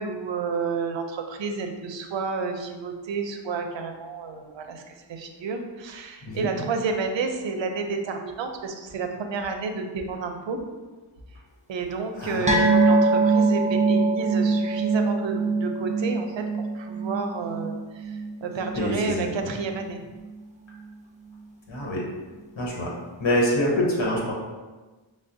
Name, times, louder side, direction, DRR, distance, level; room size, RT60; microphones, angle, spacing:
voice 1, 0.0-10.6 11.7-20.0, right 4 dB, 65° right, 5 dB, 0.6 m, -30 dB
voice 2, 12.1-12.6 18.7-19.5 21.7-22.0 22.6-22.9 23.2-24.3, left 1 dB, 70° left, -3 dB, 1.1 m, -26 dB
sound 1, 12.5-19.3 19.6-19.8 20.1-20.2, right 3 dB, 15° right, 0.4 m, -23 dB
5.7 x 2.1 x 2.6 m, 1.3 s
cardioid pair, 55°, 48 cm